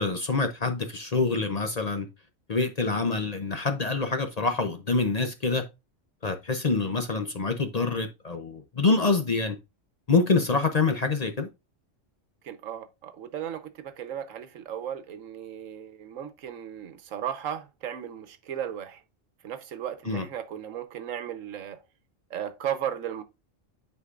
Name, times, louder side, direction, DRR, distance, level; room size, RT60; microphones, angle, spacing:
voice 1, 0.0-2.1 2.5-5.6 6.2-9.6 10.1-11.5 20.1-20.2, left 3 dB, 40° left, 0.6 m, -26 dB
voice 2, 12.4-19.0 19.4-21.8 22.3-23.2, right 9 dB, 85° right, 1.2 m, -35 dB
9.7 x 4.6 x 2.4 m
omnidirectional pair, 1.3 m